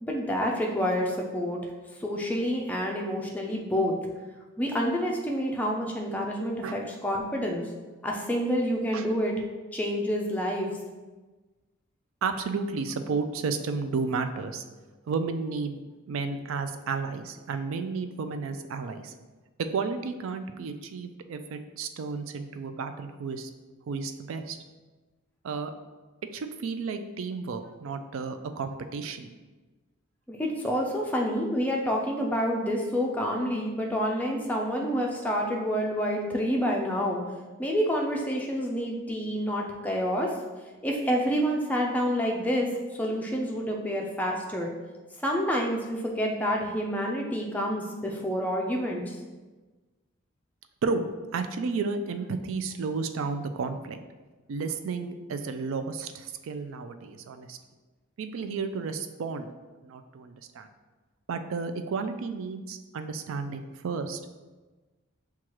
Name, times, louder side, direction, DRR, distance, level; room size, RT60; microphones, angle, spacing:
voice 1, 0.0-1.6 2.0-3.9 4.6-7.6 8.0-9.3 9.7-10.7 30.3-37.2 37.6-40.3 40.8-42.7 43.0-44.7 45.2-49.2, equal, 5° left, -1 dB, 0.4 m, -28 dB
voice 2, 12.2-14.6 15.1-15.8 16.1-19.1 19.6-23.5 23.9-24.6 25.4-25.7 26.3-29.3 50.8-54.0 54.5-57.6 58.2-59.5 59.8-60.7 61.3-64.2, right 4 dB, 70° right, 8 dB, 0.3 m, -32 dB
6.1 x 2.3 x 3.0 m, 1.3 s
head